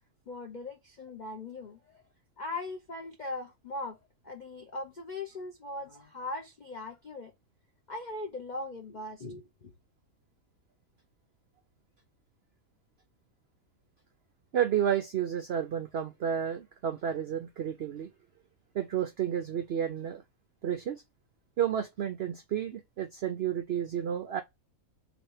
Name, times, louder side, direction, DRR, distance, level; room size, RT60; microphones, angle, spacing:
voice 1, 0.3-2.0 2.4-7.3 7.9-9.7, left 2 dB, 65° left, 0.4 m, -40 dB
voice 2, 14.5-18.1 18.7-20.2 20.6-21.0 21.6-24.4, right 9 dB, 75° right, 0.5 m, -31 dB
3.5 x 3.0 x 4.5 m
omnidirectional pair, 1.7 m